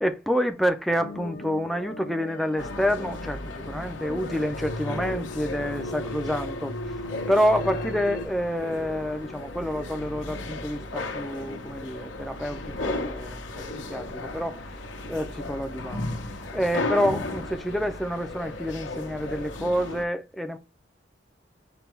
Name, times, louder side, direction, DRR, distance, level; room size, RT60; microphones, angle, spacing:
voice 1, 0.0-7.0 7.3-14.8 15.1-20.6, equal, ahead, 0.4 m, -28 dB
sound 1, 1.0-8.3, left 1 dB, 50° left, 0.7 m, -37 dB
sound 2, 2.6-20.0, left 2 dB, 90° left, 0.8 m, -35 dB
5.4 x 2.2 x 4.3 m
head